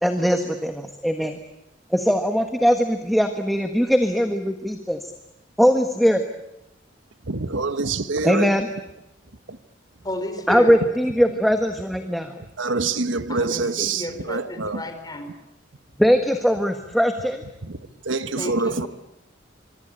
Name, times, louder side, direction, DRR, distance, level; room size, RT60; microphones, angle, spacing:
voice 1, 0.0-1.4 1.9-5.0 5.6-6.2 8.2-8.7 10.5-12.3 16.0-17.4, equal, ahead, 1.5 m, -20 dB
voice 2, 7.3-8.5 9.5-9.6 12.6-14.8 17.6-17.8 18.0-18.9, right 3 dB, 90° right, 1.4 m, -25 dB
voice 3, 10.0-10.8 13.3-15.3 18.4-18.9, left 1 dB, 20° left, 4.4 m, -32 dB
25.5 x 24.0 x 9.1 m
head